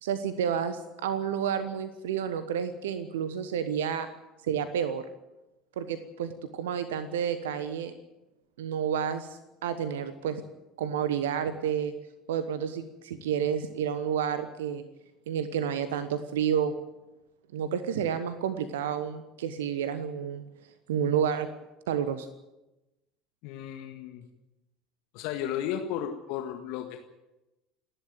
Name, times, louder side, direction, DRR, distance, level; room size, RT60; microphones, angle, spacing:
voice 1, 0.0-4.1 4.4-5.0 5.8-7.9 8.6-9.3 9.6-10.4 10.8-11.9 12.3-14.8 15.3-16.7 17.5-20.4 20.9-21.5 21.9-22.3, right 8 dB, 70° right, 12 dB, 1.2 m, -30 dB
voice 2, 23.4-24.2 25.1-27.0, left 10 dB, 55° left, 5 dB, 1.7 m, -34 dB
27.5 x 11.5 x 9.3 m, 1.0 s
figure-of-eight pair, 65°, 0 cm